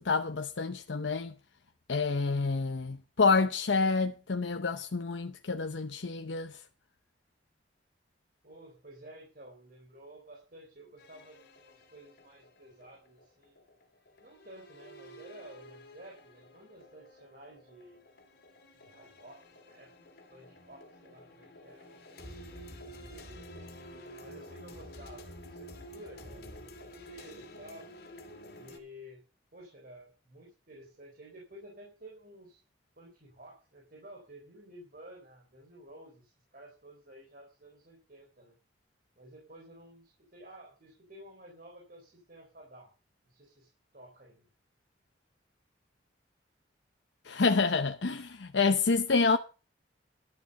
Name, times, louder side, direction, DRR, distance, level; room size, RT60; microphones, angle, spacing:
voice 1, 0.0-1.3 1.9-6.6 47.2-49.4, left 4 dB, 85° left, 0.8 m, -28 dB
voice 2, 8.4-13.6 14.2-18.0 18.7-19.9 20.3-23.7 24.2-27.9 28.5-29.2 29.5-32.6 32.9-38.6 39.2-42.9 43.3-44.5, right 1 dB, 50° right, 4.0 m, -53 dB
sound 1, 11.0-28.8, equal, 60° left, 2.7 m, -50 dB
12.0 x 7.6 x 6.8 m
head